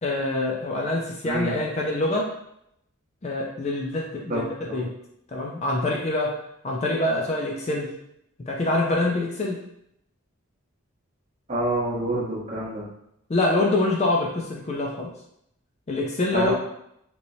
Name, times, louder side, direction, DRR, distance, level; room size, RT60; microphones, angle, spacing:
voice 1, 0.0-2.3 3.2-4.4 4.7-4.9 5.3-6.3 6.6-7.9 8.5-9.6 13.3-15.1 15.9-16.5, left 2 dB, 30° left, -1 dB, 0.4 m, -25 dB
voice 2, 1.2-1.5 4.3-4.4 4.7-4.8 11.5-12.8 16.3-16.5, right 1 dB, 35° right, -6 dB, 0.9 m, -27 dB
3.0 x 2.8 x 2.6 m, 0.77 s
head